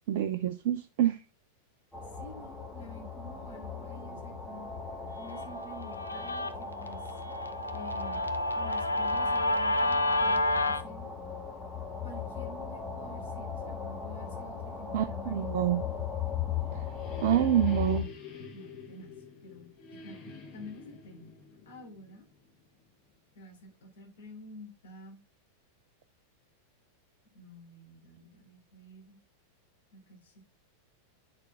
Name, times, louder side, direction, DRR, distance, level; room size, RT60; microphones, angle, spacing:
voice 1, 0.1-1.2 14.9-15.8 16.7-16.9 17.2-18.1, right 11 dB, 50° right, 0.6 m, -27 dB
sound 1, 1.9-18.0, left 6 dB, 5° left, 1.9 m, -38 dB
voice 2, 2.1-4.8 5.2-7.2 7.7-8.2 8.5-11.1 12.0-15.6 18.5-19.1 19.4-21.3 21.6-22.3 23.3-25.2 27.3-29.2 29.9-30.4, left 1 dB, 60° left, 3.3 m, -49 dB
Guitar, 5.3-10.8, left 1 dB, 80° left, 0.8 m, -30 dB
sound 2, 16.1-22.8, left 4 dB, 35° left, 2.4 m, -48 dB
8.9 x 6.6 x 3.5 m
figure-of-eight pair, 90°, 0 cm